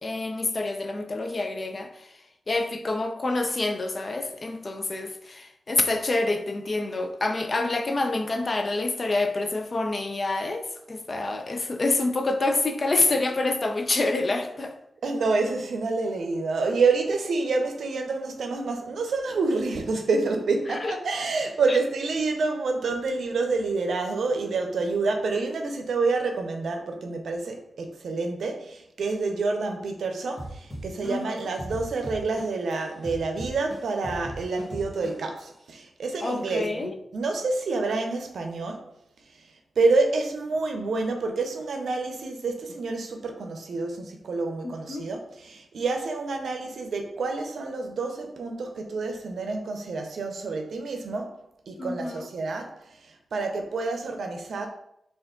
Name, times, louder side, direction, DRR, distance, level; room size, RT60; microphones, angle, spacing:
voice 1, 0.0-2.1 2.5-14.7 20.7-20.9 21.7-21.8 31.0-31.4 36.2-36.9 44.6-45.1 51.8-52.3, left 2 dB, 45° left, 0.5 m, -27 dB
voice 2, 15.0-38.8 39.8-51.4 51.7-54.7, right 3 dB, 85° right, 0.5 m, -28 dB
sound 1, 30.4-32.7 33.0-35.4, right 1 dB, 10° left, 1.3 m, -37 dB
3.4 x 2.5 x 3.7 m
cardioid pair, 75°, 0 cm